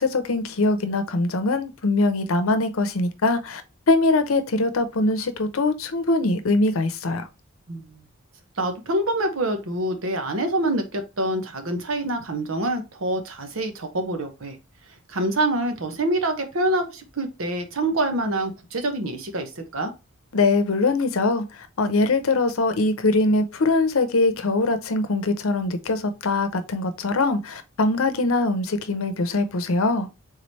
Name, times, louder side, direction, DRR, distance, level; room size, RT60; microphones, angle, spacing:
voice 1, 0.0-3.6 3.9-7.3 20.3-21.4 21.8-30.1, left 2 dB, 85° left, 0.7 m, -22 dB
voice 2, 7.7-8.0 8.6-14.6 15.1-19.9, right 1 dB, 80° right, 1.0 m, -26 dB
3.8 x 3.2 x 4.0 m
head